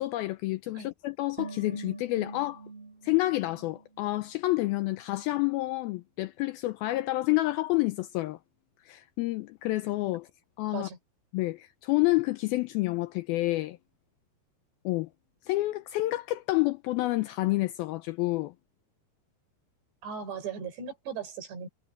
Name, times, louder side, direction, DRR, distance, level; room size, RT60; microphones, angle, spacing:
voice 1, 0.0-2.6 3.0-8.4 8.9-10.3 10.6-10.9 11.3-13.8 14.9-15.1 15.4-18.5, left 19 dB, 85° left, 2.2 m, -29 dB
sound 1, 1.4-4.7 4.9-5.0, right 4 dB, 35° right, 5.5 m, -45 dB
voice 2, 20.0-21.7, right 6 dB, 90° right, 6.8 m, -37 dB
omnidirectional pair, 4.9 m